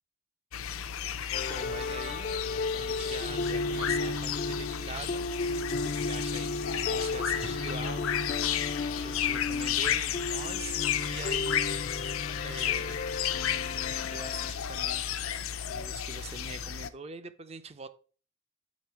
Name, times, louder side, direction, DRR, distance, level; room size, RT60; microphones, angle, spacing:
sound 1, 0.5-16.9, left 9 dB, 90° left, 0.5 m, -33 dB
sound 2, 1.3-14.5, left 3 dB, 40° left, 0.4 m, -34 dB
voice 1, 1.4-2.3 2.7-5.2 5.8-8.6 9.0-11.6 12.4-13.0 14.1-15.1 15.6-17.9, right 4 dB, 30° right, 0.5 m, -44 dB
7.3 x 4.9 x 4.6 m
head